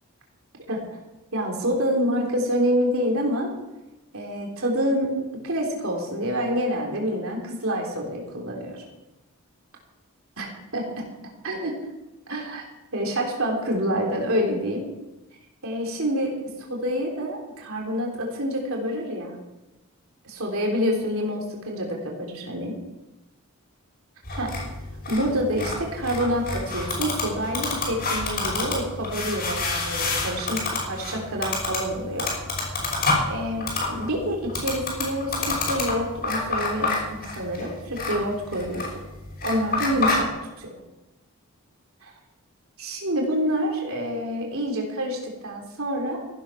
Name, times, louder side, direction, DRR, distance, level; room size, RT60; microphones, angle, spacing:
voice 1, 1.3-3.5 4.1-5.1 5.4-8.8 10.4-10.5 10.7-11.0 11.4-11.8 12.3-12.7 12.9-14.9 15.6-19.4 20.2-22.7 24.3-24.5 25.1-32.3 33.3-38.9 39.4-40.3 40.6-40.7 42.0-42.1 42.8-46.2, equal, 70° right, 0 dB, 3.5 m, -27 dB
sound 1, 24.2-40.3, left 3 dB, 45° left, 5.9 m, -28 dB
15.0 x 11.5 x 5.9 m, 1.0 s
head